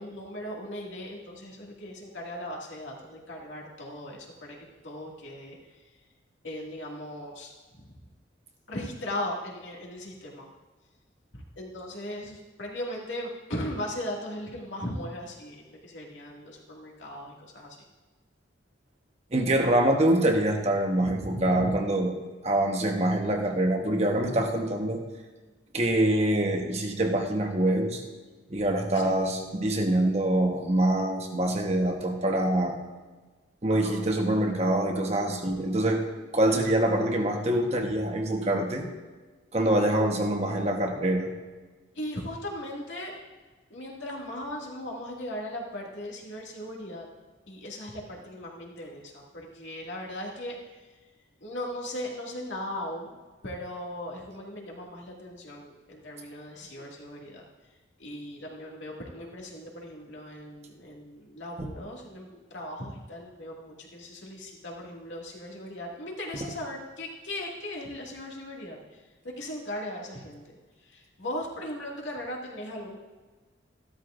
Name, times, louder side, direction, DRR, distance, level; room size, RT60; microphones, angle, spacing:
voice 1, 0.0-4.6 4.8-5.6 6.4-7.5 7.8-7.9 8.7-10.5 11.3-17.8 21.0-21.7 28.9-29.1 33.7-33.9 41.9-43.2 43.7-47.1 47.5-50.6 51.4-53.2 53.4-57.4 58.0-73.0, left 1 dB, 75° left, -2 dB, 2.1 m, -38 dB
voice 2, 19.3-22.1 22.4-25.0 25.7-28.0 28.5-32.8 33.6-36.0 36.3-38.9 39.5-41.3 61.6-61.7, right 1 dB, 35° right, 3 dB, 1.1 m, -25 dB
14.0 x 12.5 x 2.5 m, 1.3 s
head